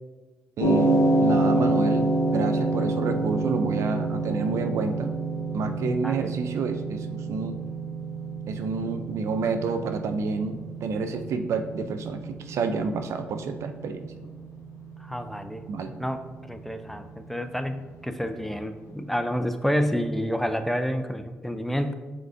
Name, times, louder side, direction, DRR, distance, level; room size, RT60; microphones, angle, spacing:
sound 1, 0.6-18.9, right 2 dB, 75° left, 0.7 m, -28 dB
voice 1, 0.6-5.1 5.5-7.6 8.5-14.1 15.7-15.9, right 4 dB, 70° right, 8 dB, 0.4 m, -29 dB
voice 2, 5.8-6.3 15.0-15.6 16.0-21.9, equal, 5° left, 8 dB, 0.4 m, -29 dB
5.1 x 3.7 x 2.5 m, 1.3 s
supercardioid pair, 50°, 5 cm